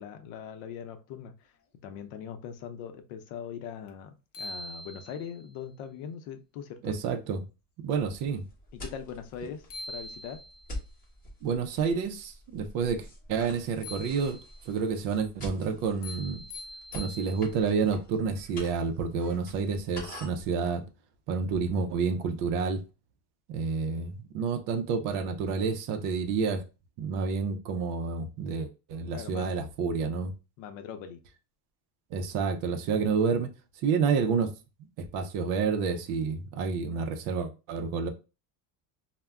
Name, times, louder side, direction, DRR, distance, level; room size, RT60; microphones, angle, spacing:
voice 1, 0.0-1.5 1.8-7.0 8.7-10.4 29.1-29.6 30.6-31.2, left 8 dB, 90° left, 0.6 m, -41 dB
sound 1, 3.9-4.0 4.3-5.4 9.3-9.4 9.7-10.8 13.8-14.7 16.0-17.8, left 1 dB, 40° left, 0.4 m, -43 dB
voice 2, 6.8-7.4 7.8-8.4 11.4-14.4 14.7-16.4 16.9-20.8 21.3-22.8 23.5-26.6 27.0-30.3 32.1-33.5 33.8-34.5 35.0-38.1, right 5 dB, 50° right, 0.5 m, -29 dB
sound 2, 7.9-20.5, left 1 dB, 20° left, 0.9 m, -46 dB
2.2 x 2.1 x 3.4 m
cardioid pair, 170°, 40 cm